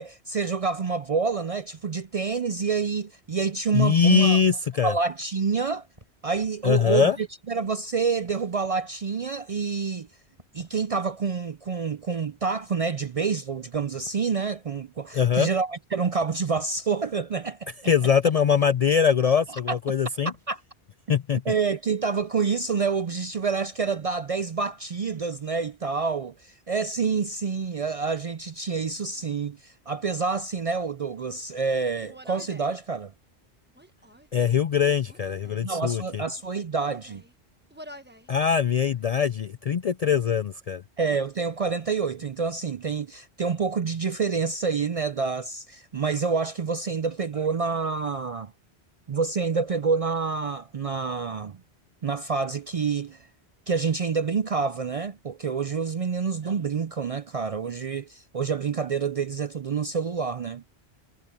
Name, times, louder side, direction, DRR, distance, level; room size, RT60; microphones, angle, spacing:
voice 1, 0.0-4.4 4.8-5.9 6.2-10.1 10.5-17.7 19.7-19.8 20.5-20.6 21.5-33.1 35.6-37.2 41.0-48.5 49.1-51.6 52.0-53.2 53.7-60.6, right 5 dB, 50° right, 0.4 m, -27 dB
voice 2, 3.7-4.9 6.6-7.2 15.1-15.5 17.9-20.3 21.1-21.5 34.3-36.2 38.3-40.8, left 7 dB, 55° left, 0.4 m, -22 dB
sound 1, 6.0-6.8 8.2-8.7 10.4-10.9 12.8-14.2 15.9-17.0 18.4-18.8 20.3-20.6 22.2-22.4, equal, 30° right, 3.8 m, -53 dB
Human voice, 32.0-32.8 33.7-34.6 35.0-35.7 36.4-37.3 37.7-38.3 38.7-39.3, equal, 10° right, 1.2 m, -49 dB
omnidirectional pair, 1.1 m